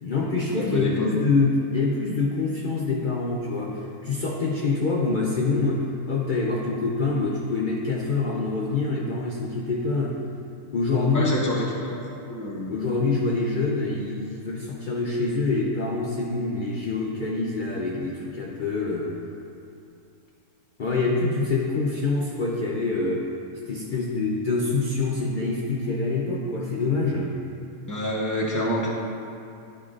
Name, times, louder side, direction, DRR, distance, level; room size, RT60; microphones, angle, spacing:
voice 1, 0.0-10.2 10.7-11.4 12.7-19.1 20.8-23.3 23.7-27.4, left 3 dB, 65° left, -3 dB, 0.4 m, -25 dB
voice 2, 0.5-1.1 11.1-12.0 12.3-12.7 27.9-28.9, equal, 15° left, -4 dB, 0.7 m, -27 dB
11.0 x 4.6 x 2.4 m, 2.6 s
omnidirectional pair, 1.6 m